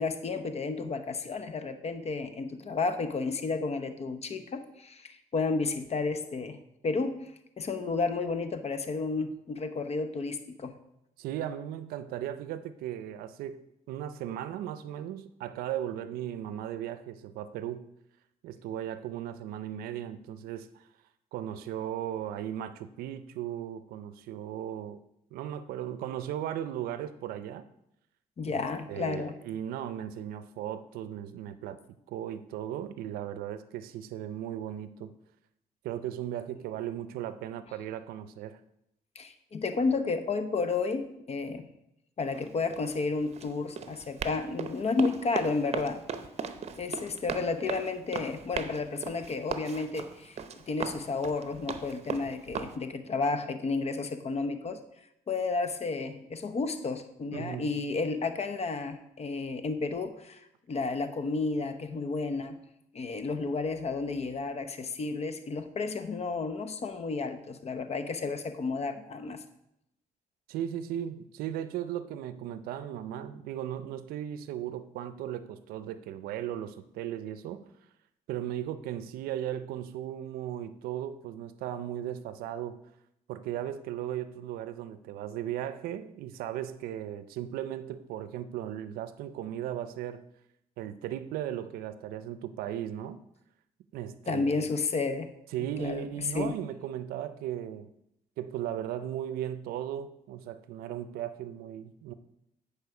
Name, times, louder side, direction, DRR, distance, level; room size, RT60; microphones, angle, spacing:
voice 1, 0.0-7.3 7.6-10.7 28.4-29.4 39.1-41.6 42.2-46.0 46.8-50.4 50.7-54.8 55.3-60.4 60.7-62.6 62.9-69.4 94.3-95.3 95.8-96.5, left 4 dB, 45° left, 9 dB, 0.9 m, -32 dB
voice 2, 11.2-17.9 18.4-20.8 21.3-25.0 25.3-27.7 28.5-28.6 28.9-31.8 32.1-35.1 35.8-38.6 57.3-57.7 70.5-77.6 78.3-82.8 83.3-90.2 90.8-93.2 93.9-94.7 95.5-97.9 98.4-102.1, right 11 dB, 90° right, 13 dB, 0.5 m, -37 dB
Run, 42.2-52.8, right 6 dB, 45° right, 0.8 m, -38 dB
9.4 x 4.9 x 4.9 m, 0.81 s
cardioid pair, 70°, 15 cm